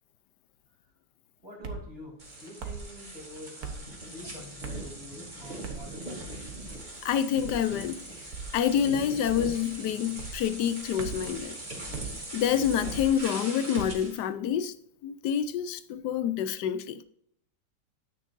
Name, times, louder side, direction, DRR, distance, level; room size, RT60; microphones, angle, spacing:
voice 1, 1.4-6.4, left 1 dB, 30° left, 4.1 m, -46 dB
sound 1, 1.6-1.9 2.6-2.9 3.6-3.9 4.6-4.9 5.6-5.9 6.5-6.8 7.4-7.6 8.3-8.6 9.3-9.6 10.2-10.4 11.0-11.3 11.9-12.1 12.8-13.2 13.8-14.0, right 5 dB, 60° right, 1.7 m, -39 dB
sound 2, 2.2-14.2, right 1 dB, 25° right, 2.6 m, -41 dB
voice 2, 7.0-8.0 8.5-11.5 12.3-14.7 15.0-17.0, left 9 dB, 70° left, 1.2 m, -27 dB
9.9 x 9.2 x 2.6 m
omnidirectional pair, 1.9 m